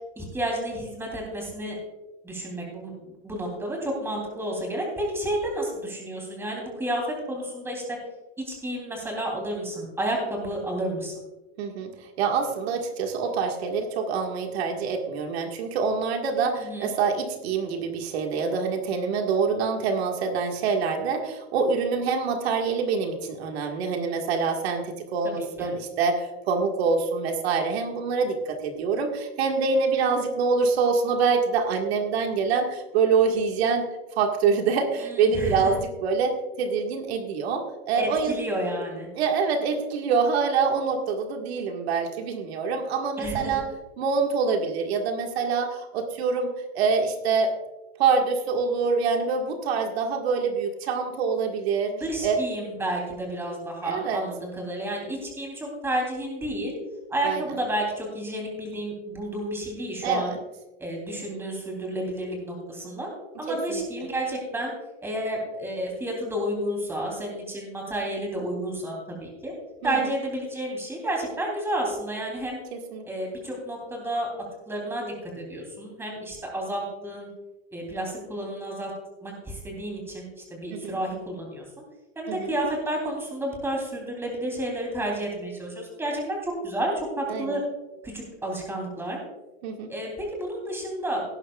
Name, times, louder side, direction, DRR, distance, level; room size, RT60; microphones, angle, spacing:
voice 1, 0.1-1.7 2.2-8.0 8.4-11.1 16.6-16.9 25.2-25.7 35.0-35.8 38.0-39.1 43.2-43.6 51.9-56.7 57.1-60.3 60.8-63.1 63.4-64.7 65.0-69.5 69.8-72.6 73.0-74.3 74.7-77.3 77.7-78.9 79.2-81.6 82.1-87.6 88.0-89.2 89.9-91.2, right 1 dB, 5° right, 0 dB, 3.3 m, -31 dB
voice 2, 11.6-33.9 34.2-38.4 39.2-43.7 44.0-47.5 48.0-51.9 52.2-52.4 53.8-54.2 57.2-57.4 60.0-60.4 63.5-63.8 69.8-70.0 72.7-73.1 80.7-81.0 82.3-82.5 87.3-87.6 89.6-89.9, right 5 dB, 75° right, 3 dB, 1.9 m, -25 dB
18.0 x 10.5 x 2.4 m, 1.1 s
supercardioid pair, 160°, 32 cm